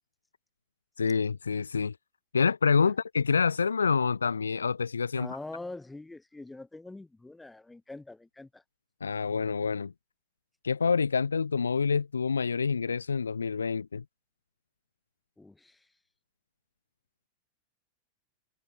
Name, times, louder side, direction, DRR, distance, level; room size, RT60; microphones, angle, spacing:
voice 1, 1.0-1.9 2.3-5.3 9.0-9.9 10.6-14.0, left 5 dB, 75° left, 0.5 m, -27 dB
voice 2, 5.1-8.6 15.4-15.9, left 2 dB, 5° left, 4.4 m, -44 dB
figure-of-eight pair, 90°, 0 cm